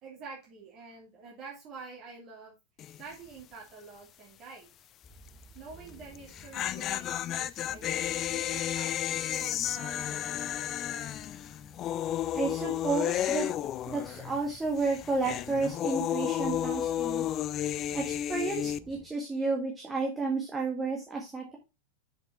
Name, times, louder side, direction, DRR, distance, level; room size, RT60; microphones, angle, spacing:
voice 1, 0.0-2.5 3.0-4.7 5.5-10.9, right 4 dB, 35° right, -3 dB, 2.9 m, -48 dB
sound 1, 2.8-3.1 3.4-3.5 6.1-14.5 14.8-18.8, left 11 dB, 30° left, 0.4 m, -32 dB
sound 2, 5.0-19.1, left 1 dB, 10° left, 1.6 m, -54 dB
voice 2, 12.3-13.5 13.9-17.3 17.9-21.6, right 3 dB, 15° right, 0 dB, 1.7 m, -31 dB
7.1 x 5.8 x 4.3 m, 0.26 s
figure-of-eight pair, 90°, 0 cm